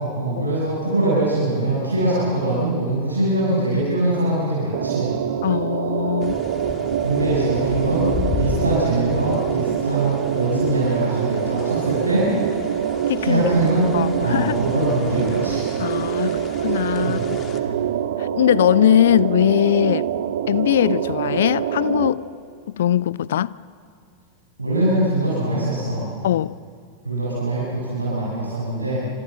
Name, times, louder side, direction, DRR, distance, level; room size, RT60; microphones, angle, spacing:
voice 1, 0.0-5.1 7.0-8.1 8.4-12.3 13.2-13.9 14.2-15.6 16.2-16.3 17.0-17.2 17.6-17.8 24.6-26.1 27.0-29.0, right 1 dB, 80° right, 7.0 m, -22 dB
sound 1, 4.7-22.1, right 10 dB, 60° right, 1.5 m, -25 dB
voice 2, 5.4-6.3 13.1-13.4 13.9-14.5 15.8-17.4 18.2-20.1 20.5-22.2 22.7-23.5 26.2-26.5, left 11 dB, 60° left, 0.6 m, -20 dB
sound 2, 6.2-17.6, left 8 dB, 30° left, 2.3 m, -35 dB
28.0 x 25.5 x 8.0 m
figure-of-eight pair, 90°, 0 cm